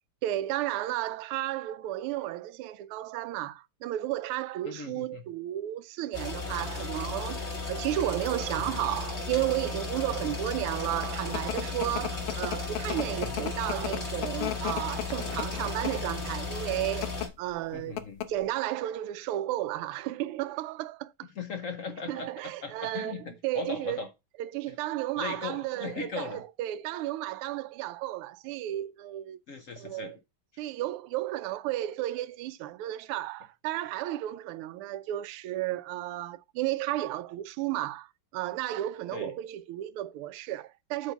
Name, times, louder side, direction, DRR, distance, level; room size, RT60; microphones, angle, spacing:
voice 1, 0.2-7.4 7.7-17.1 17.4-18.0 18.3-21.3 22.1-24.0 24.4-29.4 29.8-30.2 30.6-41.1, right 14 dB, 85° right, 1.5 m, -33 dB
voice 2, 4.6-5.3 8.6-8.8 10.2-10.3 13.2-13.5 17.7-18.3 21.3-24.1 24.7-24.8 25.2-26.4 29.5-30.2 30.5-30.7 39.1-39.3, left 5 dB, 65° left, 0.8 m, -39 dB
sound 1, 6.1-17.3, left 4 dB, 30° left, 3.5 m, -35 dB
sound 2, 10.7-16.2 16.9-17.3 17.6-17.7 18.0-18.5, left 12 dB, 85° left, 1.6 m, -35 dB
8.1 x 3.5 x 5.5 m
omnidirectional pair, 2.4 m